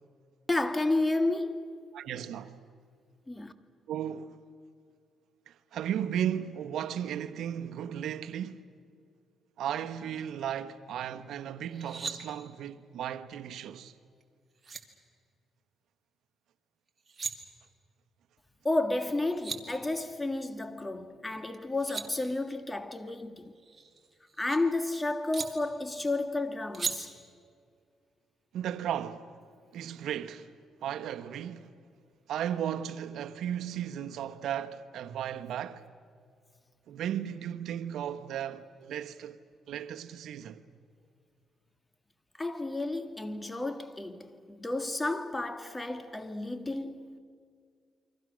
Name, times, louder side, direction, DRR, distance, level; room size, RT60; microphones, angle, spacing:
voice 1, 0.5-1.7 3.3-3.5 18.6-23.5 24.4-27.1 42.4-47.2, left 2 dB, 15° left, 1.8 m, -31 dB
voice 2, 1.9-2.5 3.9-4.4 5.5-8.6 9.6-13.9 28.5-29.3 29.7-30.5 30.8-31.7 32.3-35.8 36.9-39.4 39.7-40.6, right 10 dB, 75° right, 1.2 m, -35 dB
sound 1, 11.7-12.2 14.2-14.3 14.6-14.8 16.9-17.3 19.0-19.1 19.3-19.6 21.5-22.1 23.6-24.6 25.3-25.5 26.7-26.9, right 5 dB, 35° right, 2.4 m, -37 dB
29.0 x 24.5 x 6.3 m
cardioid pair, 90°, 0 cm